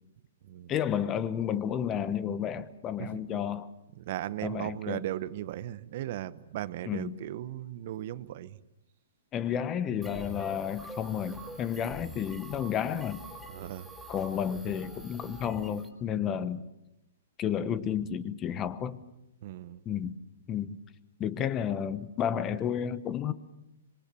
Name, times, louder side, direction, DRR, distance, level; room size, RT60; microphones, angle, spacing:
voice 1, 0.7-3.7 4.4-5.0 6.8-7.2 9.3-13.2 14.1-16.6 17.4-19.0 19.8-20.1 20.5-20.8 21.2-23.3, left 9 dB, 25° left, 14 dB, 1.2 m, -31 dB
voice 2, 4.0-8.6 13.5-13.9 19.4-19.8, right 13 dB, 50° right, 15 dB, 1.0 m, -37 dB
sound 1, 10.0-15.9, right 1 dB, 5° right, 4.3 m, -46 dB
26.5 x 23.5 x 6.9 m, 0.90 s
hypercardioid pair, 145°, 0 cm